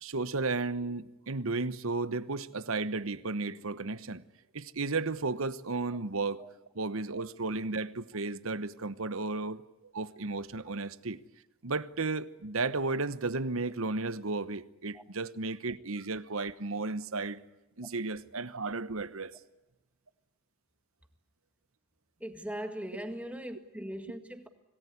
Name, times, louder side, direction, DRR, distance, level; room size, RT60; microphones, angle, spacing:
voice 1, 0.0-4.2 4.5-6.4 6.7-9.6 9.9-11.2 11.6-17.4 17.8-19.3, right 3 dB, 70° right, 1.1 m, -34 dB
voice 2, 22.2-24.5, equal, 5° right, 1.9 m, -40 dB
26.0 x 19.0 x 9.8 m
head